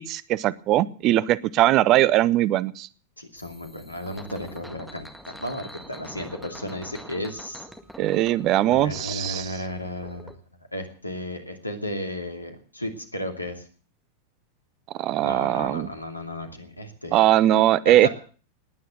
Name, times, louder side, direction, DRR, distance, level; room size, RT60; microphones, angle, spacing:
voice 1, 0.0-2.9 8.0-9.5 15.0-15.9 17.1-18.1, right 14 dB, 35° right, 20 dB, 0.7 m, -20 dB
voice 2, 3.2-7.7 8.7-10.4 10.7-13.6 15.2-17.2 17.9-18.1, left 1 dB, 85° left, 6 dB, 2.6 m, -34 dB
sound 1, 3.4-10.4, equal, ahead, 1.9 m, -45 dB
19.5 x 9.4 x 7.7 m, 0.42 s
figure-of-eight pair, 90°, 0 cm